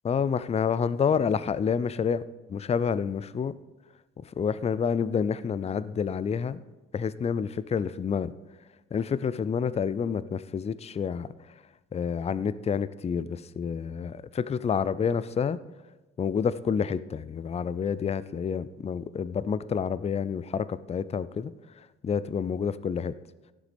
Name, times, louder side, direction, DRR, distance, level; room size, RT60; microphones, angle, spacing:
voice 1, 0.0-2.2 2.5-3.5 4.2-6.6 6.9-8.3 8.9-11.5 11.9-15.6 16.2-23.1, left 6 dB, 20° left, 16 dB, 0.5 m, -29 dB
17.0 x 11.0 x 3.4 m, 1.2 s
figure-of-eight pair, 50°, 35 cm